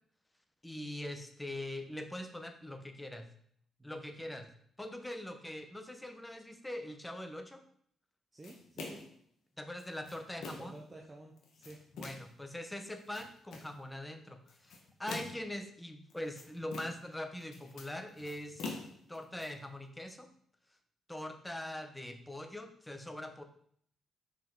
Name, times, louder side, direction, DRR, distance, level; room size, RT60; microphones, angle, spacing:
voice 1, 0.6-3.3 3.8-7.6 9.6-10.7 11.9-18.6 19.1-20.3 21.1-23.4, left 1 dB, 10° left, 7 dB, 0.9 m, -42 dB
voice 2, 8.3-9.0 10.5-11.8, right 2 dB, 20° right, 0 dB, 0.8 m, -52 dB
sound 1, 8.4-9.2 9.8-10.8 11.4-12.4 12.9-13.8 14.5-15.5 16.1-17.1 17.4-19.5, left 3 dB, 75° left, 1.3 m, -45 dB
5.7 x 5.1 x 3.8 m, 0.62 s
cardioid pair, 90°, 0 cm